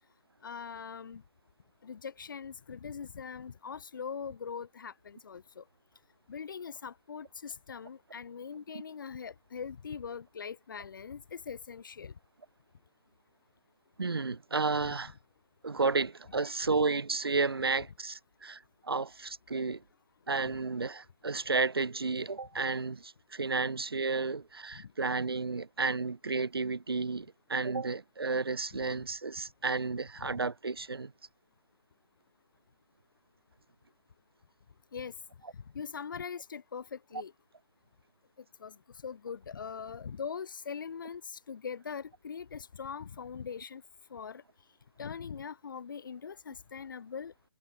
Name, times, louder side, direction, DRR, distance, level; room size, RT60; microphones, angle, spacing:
voice 1, 0.4-1.2 1.8-5.6 6.3-12.1 24.7-24.9 30.2-30.4 34.9-35.1 35.5-37.3 38.6-38.8 39.0-43.8 44.1-44.4 45.0-47.3, left 6 dB, 60° left, 3.5 m, -41 dB
voice 2, 14.0-15.1 15.6-19.8 20.3-31.1, right 4 dB, 80° right, 1.9 m, -32 dB
figure-of-eight pair, 145°, 12 cm